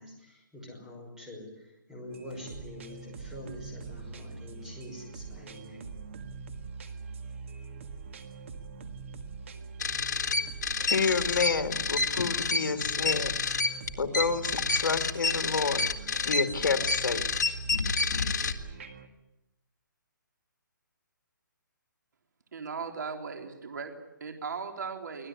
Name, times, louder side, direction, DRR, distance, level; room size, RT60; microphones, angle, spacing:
voice 1, 0.0-5.9, left 1 dB, 5° right, -1 dB, 5.6 m, -45 dB
sound 1, 2.1-19.1, right 5 dB, 40° right, 1.9 m, -43 dB
sound 2, 9.8-18.5, left 4 dB, 60° left, 2.0 m, -29 dB
voice 2, 10.9-13.4 14.0-15.8 16.2-17.2, left 5 dB, 75° left, 7 dB, 2.5 m, -29 dB
voice 3, 22.5-25.3, right 5 dB, 60° right, 4 dB, 3.7 m, -38 dB
25.0 x 17.5 x 9.7 m, 0.91 s
hypercardioid pair, 170°, 11 cm